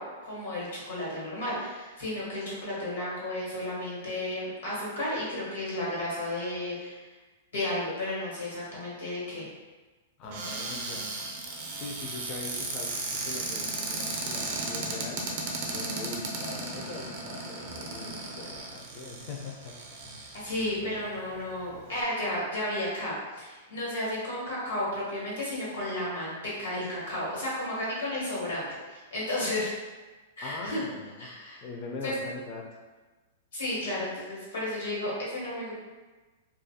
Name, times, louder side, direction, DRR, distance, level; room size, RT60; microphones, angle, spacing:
voice 1, 0.0-7.0 7.5-9.5 20.3-29.7 30.4-30.8 31.2-31.6 32.0-32.1 33.5-35.7, left 1 dB, 90° left, -7 dB, 1.2 m, -33 dB
voice 2, 10.2-11.2 11.5-15.3 15.7-20.2 20.8-20.9 30.4-31.3 31.6-32.8, left 3 dB, 30° left, 0 dB, 0.4 m, -41 dB
Cupboard open or close, 10.3-20.7 21.3-21.4 21.7-22.0, right 3 dB, 45° right, 0.5 m, -35 dB
2.4 x 2.2 x 2.7 m, 1.3 s
supercardioid pair, 160°, 0 cm